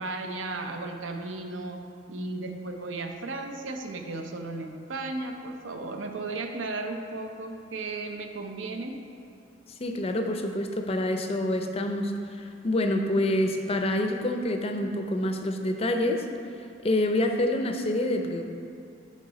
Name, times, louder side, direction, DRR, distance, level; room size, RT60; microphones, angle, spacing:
voice 1, 0.0-9.1, right 2 dB, 75° right, 5 dB, 0.6 m, -35 dB
voice 2, 9.8-16.2 16.8-18.4, left 1 dB, 30° left, 5 dB, 0.5 m, -27 dB
7.4 x 5.5 x 4.1 m, 2.5 s
head